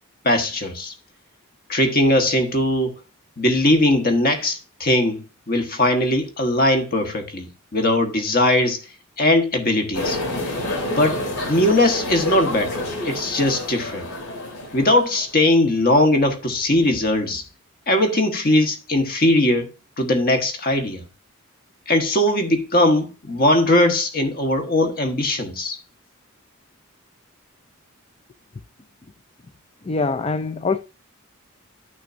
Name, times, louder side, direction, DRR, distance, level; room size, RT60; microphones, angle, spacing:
voice 1, 0.2-0.9 1.7-2.9 3.4-8.8 9.2-10.2 10.8-11.2 11.5-14.1 14.7-17.4 17.9-19.7 20.0-21.0 21.9-25.8, left 1 dB, 40° left, 1.3 m, -20 dB
sound 1, 9.9-15.4, left 1 dB, 85° left, 3.0 m, -28 dB
voice 2, 29.8-30.8, left 3 dB, 25° left, 0.4 m, -23 dB
12.5 x 6.2 x 2.6 m
head